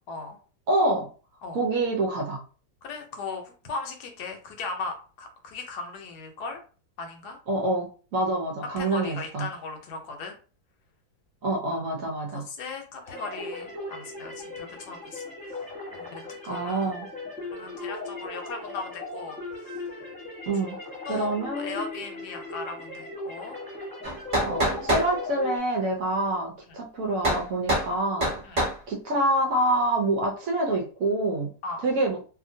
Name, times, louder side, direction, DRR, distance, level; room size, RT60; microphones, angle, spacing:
voice 1, 0.7-1.1 1.5-2.4 7.5-9.5 11.4-12.4 16.5-17.1 20.5-20.8 21.1-21.9 24.5-31.5 31.8-32.2, right 2 dB, 65° right, 0 dB, 0.8 m, -26 dB
voice 2, 2.8-6.6 7.0-7.4 8.8-10.4 11.7-11.8 12.3-15.7 15.9-16.9 17.5-19.8 21.1-23.6 26.7-26.8 28.4-28.6 31.6-31.8, left 4 dB, 70° left, 4 dB, 1.1 m, -38 dB
sound 1, 13.0-25.6, left 2 dB, 5° left, 0.8 m, -38 dB
sound 2, 24.0-25.1 27.2-27.4 27.7-27.9 28.2-28.8, right 1 dB, 25° right, 1.0 m, -25 dB
2.8 x 2.5 x 2.6 m, 0.38 s
omnidirectional pair, 2.0 m